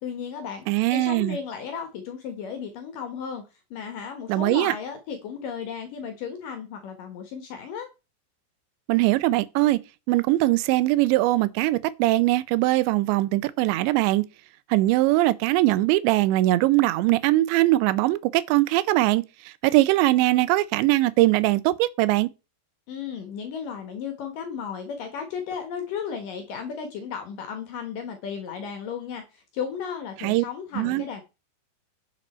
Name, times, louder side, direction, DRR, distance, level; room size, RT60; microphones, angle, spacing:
voice 1, 0.0-3.4 3.7-7.9 22.9-31.2, left 7 dB, 65° left, 2.4 m, -34 dB
voice 2, 0.7-1.4 4.3-4.7 8.9-9.8 10.1-14.3 14.7-19.2 19.6-22.3 30.2-30.5 30.8-31.0, right 17 dB, 90° right, 3.0 m, -21 dB
10.5 x 6.7 x 4.3 m
omnidirectional pair, 5.0 m